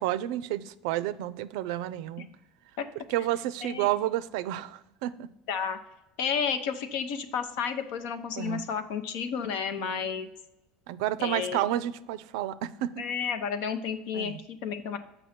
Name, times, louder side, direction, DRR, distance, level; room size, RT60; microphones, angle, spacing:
voice 1, 0.0-2.3 3.1-5.3 8.4-8.7 9.8-10.1 10.9-13.0 14.1-14.4, right 13 dB, 75° right, 15 dB, 0.4 m, -31 dB
voice 2, 5.5-5.8 6.2-10.3 11.2-11.7 13.0-15.0, left 7 dB, 70° left, 9 dB, 0.8 m, -31 dB
7.2 x 5.3 x 4.3 m, 0.91 s
supercardioid pair, 100°, 3 cm